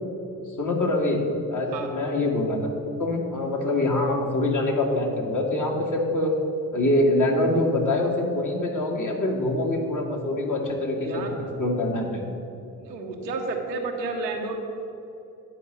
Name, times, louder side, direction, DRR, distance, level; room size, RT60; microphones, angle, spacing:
voice 1, 0.6-1.2 1.5-2.7 3.0-6.3 6.7-11.3 11.6-12.2, left 1 dB, 35° left, 0 dB, 2.0 m, -24 dB
voice 2, 11.0-11.3 12.8-14.6, right 3 dB, 80° right, 2 dB, 1.0 m, -31 dB
9.6 x 5.2 x 7.4 m, 2.8 s
figure-of-eight pair, 40°, 49 cm